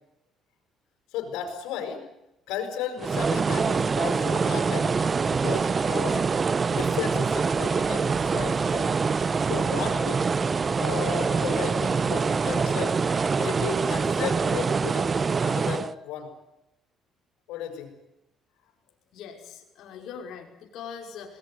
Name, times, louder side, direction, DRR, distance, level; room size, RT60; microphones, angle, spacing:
voice 1, 1.1-2.0 2.5-4.9 5.3-6.2 6.7-8.9 9.5-10.2 10.8-12.9 13.3-16.3 17.5-17.9, left 7 dB, 85° left, 5 dB, 6.9 m, -34 dB
sound 1, 3.0-15.9, right 5 dB, 35° right, 1.0 m, -25 dB
voice 2, 19.1-21.4, left 7 dB, 70° left, 2 dB, 5.6 m, -41 dB
22.0 x 20.0 x 9.6 m, 0.88 s
cardioid pair, 90°, 0 cm